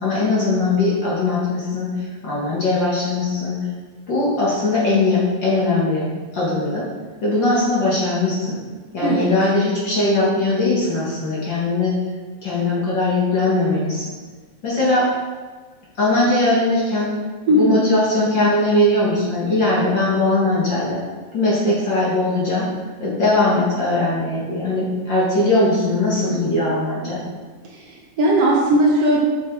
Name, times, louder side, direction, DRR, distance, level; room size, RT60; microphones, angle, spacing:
voice 1, 0.0-3.5 4.1-6.1 6.3-6.9 7.2-8.6 8.9-11.9 12.4-14.1 14.6-15.0 16.0-17.1 17.5-21.0 21.3-22.7 23.0-27.2, left 2 dB, 45° left, -7 dB, 2.0 m, -20 dB
voice 2, 17.5-17.8 27.6-29.2, right 1 dB, 65° right, -2 dB, 1.8 m, -18 dB
6.3 x 6.1 x 4.7 m, 1.4 s
omnidirectional pair, 3.5 m